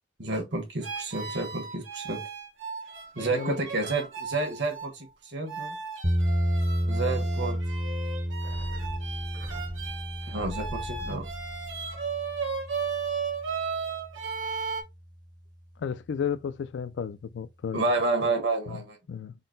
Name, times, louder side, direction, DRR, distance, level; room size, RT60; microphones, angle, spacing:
voice 1, 0.2-2.2 3.1-5.8 6.8-7.6 10.3-11.3 17.7-19.0, right 3 dB, 65° right, 1.2 m, -30 dB
sound 1, 0.8-4.9 5.5-14.8, right 5 dB, 85° right, 0.9 m, -36 dB
sound 2, 6.0-14.1, equal, 20° right, 0.6 m, -31 dB
sound 3, 8.4-13.0 13.3-13.4, equal, 50° right, 0.8 m, -43 dB
voice 2, 15.8-17.8 18.7-18.8 19.1-19.3, left 7 dB, 65° left, 0.3 m, -33 dB
3.8 x 2.1 x 3.8 m
head